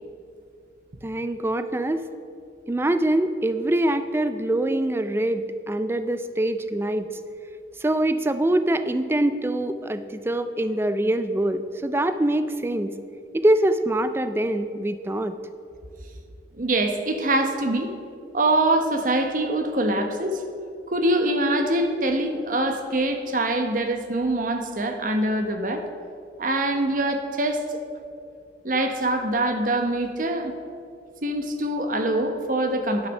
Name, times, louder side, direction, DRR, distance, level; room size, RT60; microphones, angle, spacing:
voice 1, 1.0-2.0 2.7-7.1 7.8-12.9 13.3-15.3, right 1 dB, 15° right, 11 dB, 0.4 m, -24 dB
voice 2, 16.5-17.9 18.3-20.4 20.9-25.9 26.4-27.6 28.6-30.5 31.2-33.1, right 1 dB, 50° right, 6 dB, 0.9 m, -24 dB
11.0 x 6.7 x 6.4 m, 2.4 s
head